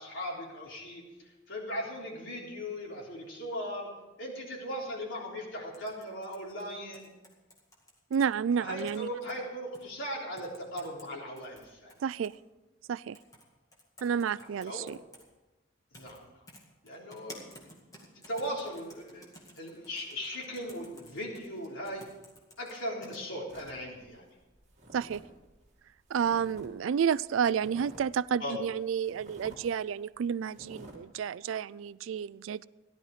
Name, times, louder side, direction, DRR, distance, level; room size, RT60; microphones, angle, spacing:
voice 1, 0.0-3.9 4.2-7.1 8.6-11.9 14.3-14.9 15.9-16.2 16.8-19.3 19.6-22.1 22.6-24.2 28.4-28.6, equal, 80° left, -3 dB, 3.8 m, -38 dB
sound 1, 5.7-8.2 8.7-9.3 9.7-9.8 10.4-11.1 11.4-12.4 13.1-13.4 13.7-15.2 15.9-16.2 16.5-23.2, left 1 dB, 15° left, 2.1 m, -53 dB
voice 2, 8.1-9.1 12.0-12.3 12.9-13.2 14.0-15.0 24.9-25.2 26.1-32.7, right 7 dB, 85° right, 20 dB, 0.3 m, -30 dB
sound 2, 23.5-26.7 27.0-28.2 28.6-28.7 29.0-29.6 30.0-30.2 30.5-30.9, right 1 dB, 35° right, 2.2 m, -51 dB
14.5 x 11.5 x 4.9 m, 1.1 s
head